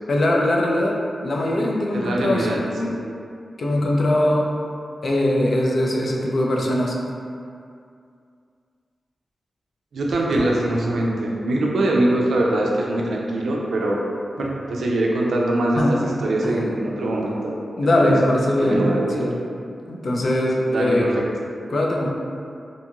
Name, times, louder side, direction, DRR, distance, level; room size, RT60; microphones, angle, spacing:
voice 1, 0.1-1.0 1.2-2.9 3.6-4.5 5.0-7.0 15.8-16.0 16.4-16.7 17.8-18.8 19.2-19.4 19.9-21.1 21.7-22.1, left 1 dB, 65° left, -2 dB, 0.4 m, -21 dB
voice 2, 1.9-2.6 2.8-2.9 9.9-14.0 14.4-15.8 16.2-17.6 18.0-18.1 18.6-19.3 20.7-21.1, right 1 dB, 90° right, -2 dB, 0.4 m, -22 dB
2.6 x 2.3 x 2.9 m, 2.4 s
cardioid pair, 60°, 0 cm